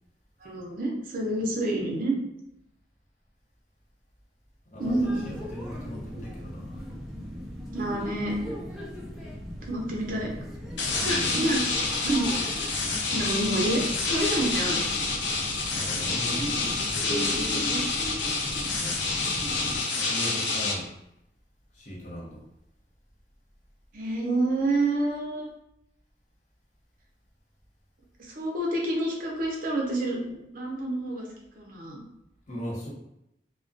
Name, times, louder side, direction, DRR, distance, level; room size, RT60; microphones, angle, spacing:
voice 1, 0.4-2.1 4.8-5.2 7.7-8.3 9.7-10.3 11.0-11.6 11.9-12.3 13.1-14.8 16.4-17.8 23.9-25.5 28.2-31.3 31.5-32.0, right 1 dB, 50° right, -1 dB, 0.6 m, -28 dB
voice 2, 4.7-6.8 11.0-11.5 15.7-16.5 19.9-20.9 21.7-22.4 32.5-32.9, equal, 45° left, -4 dB, 0.7 m, -38 dB
sound 1, 4.8-19.8, equal, ahead, 0.4 m, -38 dB
sound 2, 10.8-20.7, left 3 dB, 85° left, 0.5 m, -28 dB
2.3 x 2.2 x 2.5 m, 0.83 s
head